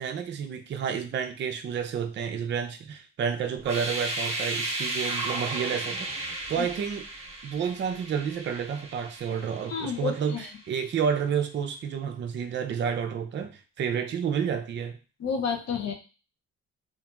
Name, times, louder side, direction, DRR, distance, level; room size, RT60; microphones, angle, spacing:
voice 1, 0.0-7.1 7.4-15.0, right 7 dB, 40° right, 5 dB, 0.4 m, -30 dB
sound 1, 3.6-10.4, right 2 dB, 20° right, 0.9 m, -34 dB
voice 2, 9.7-10.5 15.2-15.9, left 6 dB, 60° left, 4 dB, 0.6 m, -30 dB
2.8 x 2.5 x 2.2 m, 0.34 s
cardioid pair, 90°, 30 cm